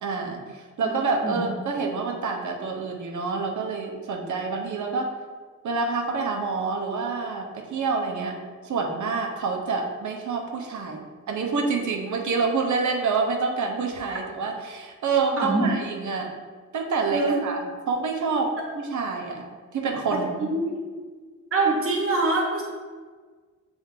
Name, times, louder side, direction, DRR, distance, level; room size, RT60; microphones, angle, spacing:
voice 1, 0.0-5.1 5.6-16.3 16.7-19.5 19.7-20.5, right 4 dB, 70° right, 2 dB, 0.9 m, -27 dB
voice 2, 15.4-15.7 17.1-17.4 20.1-20.2 20.5-20.8 21.5-22.6, right 2 dB, 45° right, -1 dB, 1.2 m, -24 dB
7.2 x 3.5 x 3.8 m, 1.5 s
wide cardioid pair, 165°, 31 cm